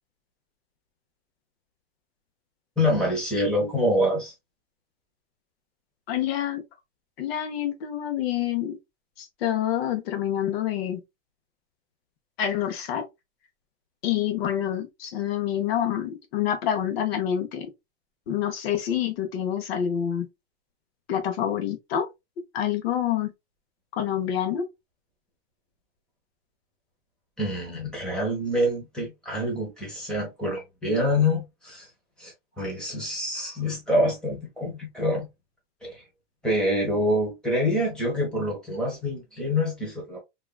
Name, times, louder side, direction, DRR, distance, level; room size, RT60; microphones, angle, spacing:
voice 1, 2.8-4.3 27.4-31.9 32.2-35.3 35.8-36.0 36.4-40.2, left 1 dB, ahead, 1.1 m, -26 dB
voice 2, 6.1-6.6 7.2-8.8 9.2-11.0 12.4-13.1 14.0-17.7 18.3-20.3 21.1-22.1 22.5-23.3 23.9-24.6, left 10 dB, 65° left, 0.8 m, -27 dB
3.7 x 2.4 x 2.2 m
supercardioid pair, 170°, 33 cm